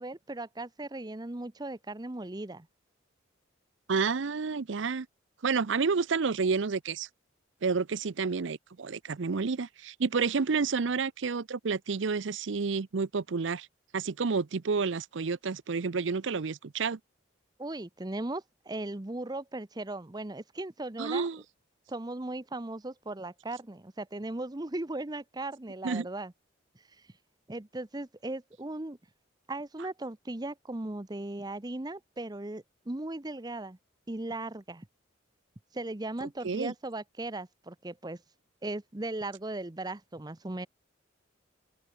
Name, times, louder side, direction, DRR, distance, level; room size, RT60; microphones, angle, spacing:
voice 1, 0.0-2.7 17.6-21.3 21.9-26.3 27.5-29.0 29.5-33.8 34.1-34.9 35.7-38.2 38.6-40.7, right 2 dB, 20° right, 0.8 m, -37 dB
voice 2, 3.9-5.1 5.4-7.1 7.6-13.7 13.9-17.0 21.0-21.4 25.8-26.1 36.2-36.7, right 5 dB, 70° right, 0.6 m, -30 dB
open air
head